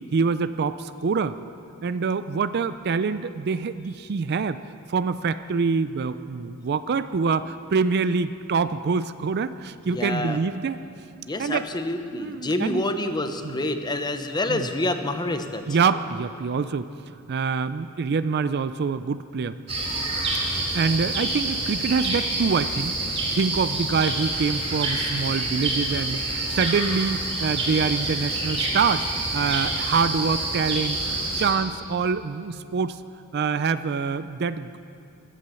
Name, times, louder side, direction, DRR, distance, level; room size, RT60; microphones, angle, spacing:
voice 1, 0.1-1.3 1.8-4.6 4.9-10.8 11.4-11.6 12.1-12.8 13.4-13.5 14.5-14.7 15.7-16.9 17.3-19.6 20.7-23.0 23.3-29.1 29.3-33.0 33.3-34.8, right 5 dB, 50° right, 13 dB, 0.4 m, -25 dB
voice 2, 9.9-10.4 11.3-15.6, left 2 dB, 20° left, 7 dB, 0.8 m, -27 dB
sound 1, 19.7-31.5, right 2 dB, 30° right, 4.6 m, -27 dB
16.0 x 11.5 x 6.9 m, 2.6 s
head